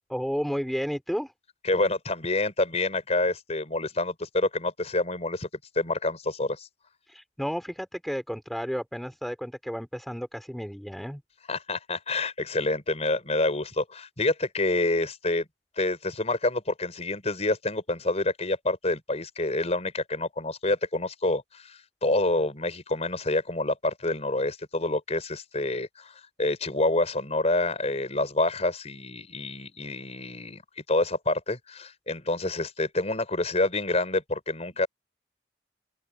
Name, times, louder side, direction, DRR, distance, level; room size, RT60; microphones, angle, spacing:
voice 1, 0.1-1.3 7.1-11.2, equal, ahead, 4.3 m, -32 dB
voice 2, 1.6-5.5 5.7-6.7 11.5-15.5 15.8-26.1 26.4-30.6 30.9-34.9, left 2 dB, 40° left, 4.8 m, -27 dB
open air
head